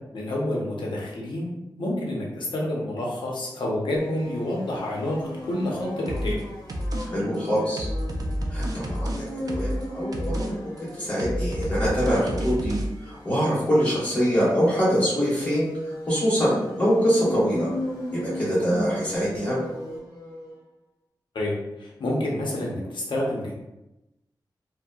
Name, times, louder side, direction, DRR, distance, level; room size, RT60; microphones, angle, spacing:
voice 1, 0.1-1.5 1.8-6.4 21.3-23.5, left 1 dB, 80° left, -3 dB, 0.6 m, -28 dB
sound 1, 3.9-20.5, left 1 dB, 50° left, 0.7 m, -37 dB
sound 2, 6.1-6.4 6.7-7.1 7.3-9.8 10.1-10.5 10.8-12.9, equal, 50° right, 0.3 m, -29 dB
voice 2, 7.0-7.9 8.5-17.7 18.1-19.6, equal, 20° left, -9 dB, 1.2 m, -24 dB
2.7 x 2.0 x 2.2 m, 0.95 s
wide cardioid pair, 140°, 8 cm